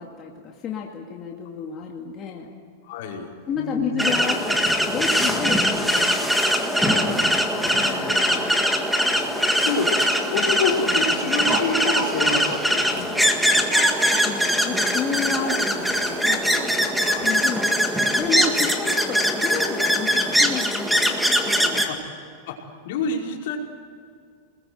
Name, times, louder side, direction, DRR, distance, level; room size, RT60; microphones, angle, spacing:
voice 1, 0.0-2.5 3.5-6.3 7.6-8.5 14.2-16.6 17.2-17.8 18.1-21.9, left 6 dB, 25° left, -1 dB, 2.2 m, -31 dB
voice 2, 2.8-4.0 6.8-8.4 9.1-10.0 10.3-13.7 16.8-17.3 21.8-22.0 22.5-23.6, left 4 dB, 65° left, 0 dB, 5.1 m, -29 dB
Speech, 3.3-3.4 3.8-3.9 4.2-4.3 4.6-4.8 5.2-5.4 5.7-5.9 6.2-6.3 7.1-7.3 8.1-10.1 10.5-10.6 11.0-14.5 14.8-15.0 15.3-17.6 18.2-18.3 18.6-18.7, right 5 dB, 80° right, 4.2 m, -36 dB
sound 1, 4.0-21.9, equal, ahead, 1.9 m, -22 dB
28.0 x 21.0 x 8.1 m, 2.3 s
supercardioid pair, 165°, 0 cm